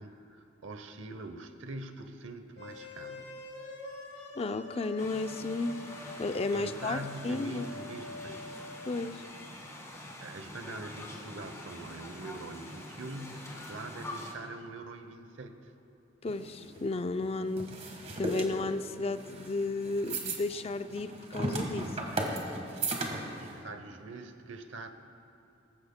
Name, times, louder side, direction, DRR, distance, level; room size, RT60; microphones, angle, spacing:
voice 1, 0.0-3.4 6.5-8.6 9.7-15.7 22.7-24.9, right 2 dB, 90° right, 8 dB, 0.8 m, -44 dB
sound 1, 2.6-8.7, left 2 dB, 70° left, 3.3 m, -46 dB
voice 2, 4.4-5.8 6.2-7.0 7.2-7.7 8.8-9.2 16.2-22.0, left 3 dB, 30° left, 10 dB, 0.4 m, -33 dB
sound 2, 5.0-14.3, left 1 dB, 15° left, 1.5 m, -45 dB
sound 3, 16.3-23.6, right 2 dB, 35° right, 1.4 m, -36 dB
19.5 x 15.0 x 2.2 m, 2.9 s
head